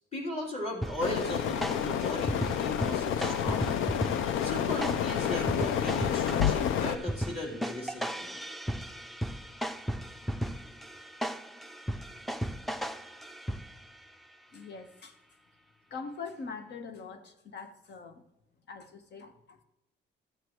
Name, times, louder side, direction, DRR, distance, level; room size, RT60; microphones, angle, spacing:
voice 1, 0.1-3.7 4.4-8.4, left 1 dB, 30° left, -2 dB, 3.5 m, -37 dB
sound 1, 0.8-14.0, equal, ahead, 0.5 m, -36 dB
sound 2, 1.0-7.0, left 9 dB, 90° left, 0.5 m, -29 dB
voice 2, 14.5-15.1 15.9-18.2 18.7-19.6, left 4 dB, 60° left, 7 dB, 1.3 m, -43 dB
13.5 x 8.3 x 3.1 m, 0.84 s
cardioid pair, 90°, 20 cm